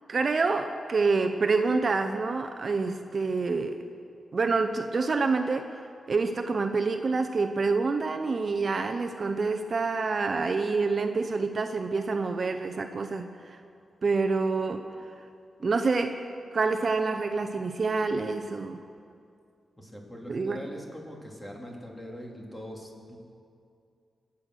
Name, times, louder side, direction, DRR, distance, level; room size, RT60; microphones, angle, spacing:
voice 1, 0.1-3.8 4.3-5.8 6.1-13.6 14.0-15.2 15.6-16.2 16.5-18.8 20.3-20.8, right 4 dB, 50° right, 7 dB, 0.8 m, -27 dB
voice 2, 19.8-23.2, equal, 10° left, -1 dB, 3.0 m, -42 dB
23.5 x 8.4 x 6.4 m, 2.4 s
cardioid pair, 80°, 0 cm